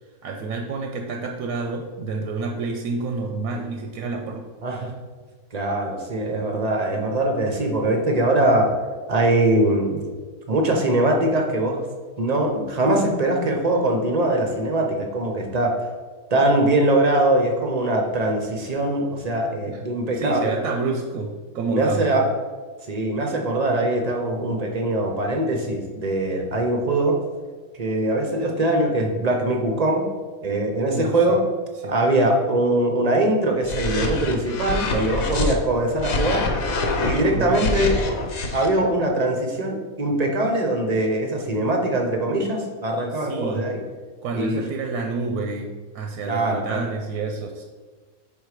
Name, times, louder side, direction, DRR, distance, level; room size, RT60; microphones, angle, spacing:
voice 1, 0.2-4.5 19.7-19.8 20.1-22.2 30.9-31.4 31.8-31.9 37.3-37.7 43.1-43.7 44.2-47.6, right 3 dB, 85° right, 3 dB, 1.1 m, -29 dB
voice 2, 4.6-4.9 5.5-8.7 9.1-10.0 10.5-11.8 12.2-15.8 16.3-20.6 21.7-22.3 22.9-27.2 27.7-30.1 30.4-31.4 31.9-36.5 37.0-38.0 38.5-43.8 44.3-44.6 46.3-46.8, right 1 dB, 50° right, 2 dB, 0.4 m, -22 dB
sound 1, 33.6-35.5 36.0-38.7, left 3 dB, 70° left, 1.1 m, -25 dB
5.3 x 3.8 x 4.8 m, 1.4 s
omnidirectional pair, 1.6 m